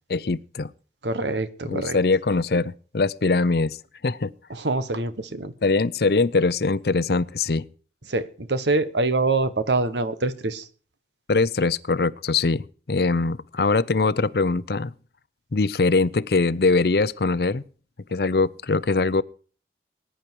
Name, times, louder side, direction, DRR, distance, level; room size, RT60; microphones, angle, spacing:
voice 1, 0.1-0.7 1.6-3.8 4.0-4.3 5.6-7.6 11.3-14.9 15.5-17.6 18.1-19.2, left 3 dB, 60° left, 0.6 m, -22 dB
voice 2, 1.0-2.0 4.5-5.5 8.1-10.7, right 3 dB, 85° right, 1.2 m, -25 dB
20.0 x 10.0 x 4.6 m
head